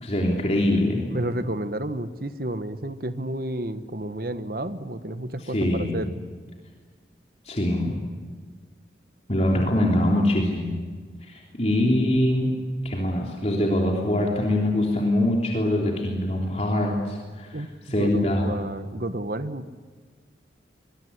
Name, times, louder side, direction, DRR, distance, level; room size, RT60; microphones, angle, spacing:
voice 1, 0.0-1.1 5.4-6.0 7.4-8.0 9.3-10.8 11.2-12.6 12.8-18.6, left 1 dB, 35° left, -1 dB, 3.4 m, -23 dB
voice 2, 1.1-6.1 17.5-17.7 18.0-19.7, right 1 dB, 55° right, 11 dB, 1.3 m, -31 dB
24.5 x 21.5 x 9.9 m, 1.5 s
head